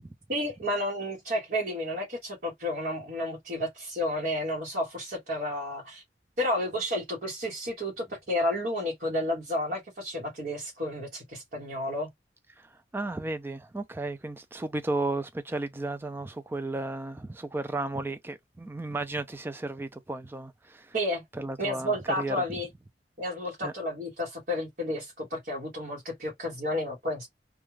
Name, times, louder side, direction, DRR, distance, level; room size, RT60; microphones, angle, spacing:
voice 1, 0.3-6.0 6.4-12.1 20.9-21.2 21.6-22.7 23.2-27.3, left 1 dB, 50° right, 1.0 m, -31 dB
voice 2, 12.6-20.9 21.3-22.4 23.6-23.7, right 2 dB, 10° right, 0.3 m, -34 dB
2.3 x 2.2 x 3.1 m
head